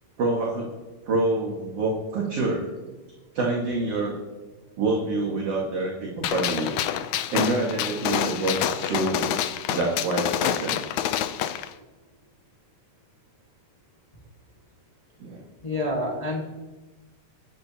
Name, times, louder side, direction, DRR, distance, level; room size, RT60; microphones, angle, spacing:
voice 1, 0.2-0.7 1.1-2.7 3.3-4.2 4.8-6.8 7.3-9.2 9.7-10.8 15.2-15.4, right 2 dB, 50° right, -2 dB, 2.6 m, -26 dB
Gunshot gunfire, 6.2-11.7, left 11 dB, 75° left, 1.9 m, -27 dB
voice 2, 15.6-16.4, left 1 dB, 55° left, -1 dB, 0.4 m, -27 dB
21.5 x 10.5 x 2.9 m, 1.2 s
omnidirectional pair, 3.7 m